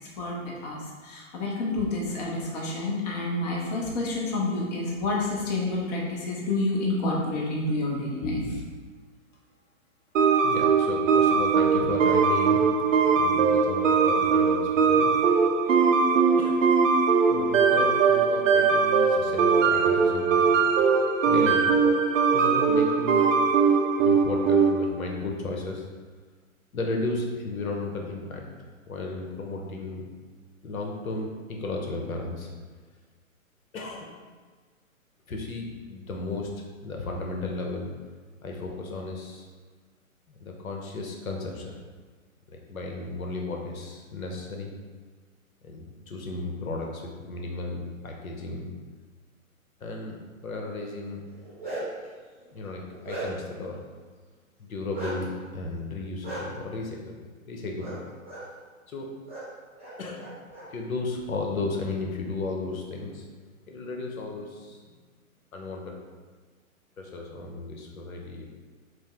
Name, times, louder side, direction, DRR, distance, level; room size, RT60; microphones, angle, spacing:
voice 1, 0.2-8.6, left 2 dB, 30° left, -3 dB, 0.6 m, -29 dB
sound 1, 10.1-24.9, right 5 dB, 65° right, 0.6 m, -21 dB
voice 2, 10.4-15.1 16.4-16.6 17.3-20.6 21.2-21.8 22.3-23.3 24.0-25.8 26.7-28.4 28.9-30.0 30.6-32.5 33.7-34.2 35.3-36.5 36.8-37.9 38.4-39.5 40.4-41.7 42.5-44.7 45.6-48.7 49.8-50.1 50.4-51.2 52.5-53.8 54.6-57.2 57.5-58.0 58.9-59.1 60.0-60.3 60.7-63.2 63.7-64.8 65.5-66.0 67.0-68.4, left 3 dB, 80° left, 1 dB, 0.9 m, -34 dB
Bark, 51.3-52.1 52.6-53.6 54.9-55.2 56.2-56.4 57.8-58.0 58.2-58.4 59.3-59.4 59.8-60.6, right 2 dB, 10° right, 0.3 m, -36 dB
5.1 x 2.0 x 3.5 m, 1.5 s
hypercardioid pair, 135°, 42 cm